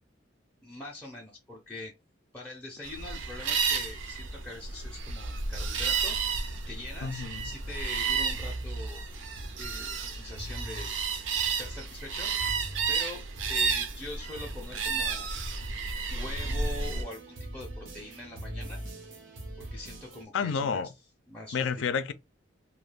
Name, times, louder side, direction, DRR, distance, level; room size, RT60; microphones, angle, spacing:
voice 1, 0.6-1.9 2.3-6.2 6.7-9.0 9.6-11.0 11.5-12.3 12.9-13.2 13.5-15.3 16.1-18.8 19.6-20.9 21.3-21.8, left 2 dB, 5° left, 0.4 m, -43 dB
sound 1, 2.8-17.0, right 5 dB, 75° right, 0.5 m, -32 dB
sound 2, 5.4-20.3, right 1 dB, 90° right, 0.9 m, -42 dB
voice 2, 7.0-7.4 20.3-20.9 21.5-22.1, left 6 dB, 80° left, 0.4 m, -29 dB
2.3 x 2.2 x 3.3 m
head